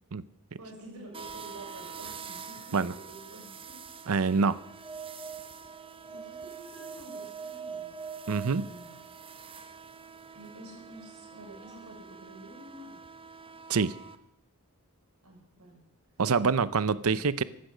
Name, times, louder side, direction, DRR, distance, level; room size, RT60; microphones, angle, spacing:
voice 1, 0.6-3.8 5.6-5.7 6.1-8.0 8.3-8.9 10.3-13.0 15.2-15.8, right 1 dB, 90° right, 0 dB, 6.8 m, -49 dB
sound 1, 1.1-14.2, right 6 dB, 25° right, 0.8 m, -47 dB
voice 2, 4.1-4.6 8.3-8.7 13.7-14.0 16.2-17.4, right 5 dB, 70° right, 17 dB, 0.6 m, -26 dB
sound 2, 4.6-9.4, right 6 dB, 5° right, 3.0 m, -43 dB
15.0 x 12.5 x 6.6 m, 0.80 s
head